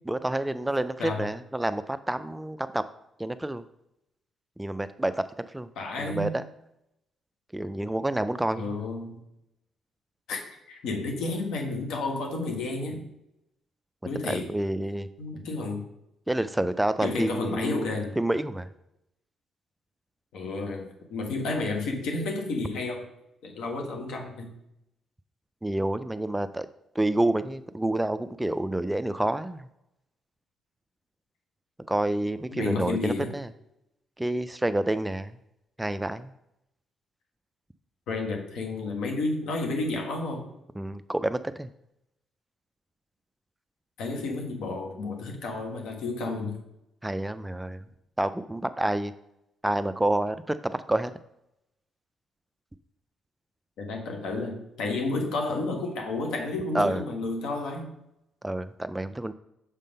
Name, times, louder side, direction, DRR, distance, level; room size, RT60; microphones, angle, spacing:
voice 1, 0.1-2.9 3.2-3.6 4.6-5.3 5.5-5.7 6.1-6.4 7.5-8.7 14.2-15.1 16.3-18.7 25.6-26.7 27.0-29.7 31.9-33.5 34.2-35.3 35.8-36.3 40.8-41.7 47.0-47.8 48.2-49.1 49.6-51.1 56.7-57.0 58.4-59.3, right 1 dB, 10° right, 13 dB, 0.3 m, -28 dB
voice 2, 5.7-6.3 8.5-9.2 10.3-10.4 10.7-13.1 14.0-14.5 15.2-15.8 17.0-18.2 20.3-23.1 23.4-24.5 32.5-33.3 38.1-40.4 44.0-46.6 53.8-57.9, left 3 dB, 80° left, 2 dB, 1.4 m, -31 dB
6.5 x 3.7 x 5.3 m, 0.83 s
cardioid pair, 90°, 0 cm